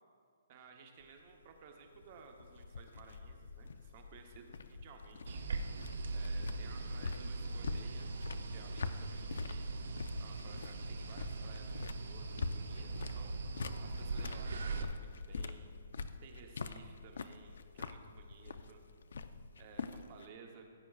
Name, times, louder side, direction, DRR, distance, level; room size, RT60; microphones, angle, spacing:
voice 1, 0.5-5.4 6.1-8.1 8.5-13.5 13.8-15.7 16.2-18.8 19.6-20.7, right 5 dB, 25° right, 3 dB, 0.9 m, -57 dB
sound 1, 1.0-20.3, left 4 dB, 65° left, 0.4 m, -45 dB
sound 2, 5.3-14.8, right 3 dB, 60° right, 0.7 m, -41 dB
16.0 x 8.9 x 2.4 m, 2.4 s
hypercardioid pair, 180°, 0 cm